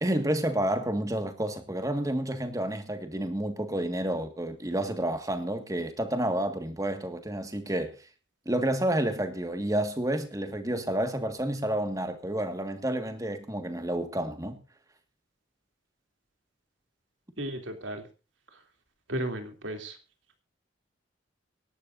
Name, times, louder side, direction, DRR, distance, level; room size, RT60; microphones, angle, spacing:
voice 1, 0.0-7.9 8.5-14.6, right 1 dB, 15° right, 1.8 m, -30 dB
voice 2, 17.4-18.0 19.1-20.0, right 1 dB, 85° right, 3.1 m, -34 dB
23.5 x 11.5 x 2.6 m
head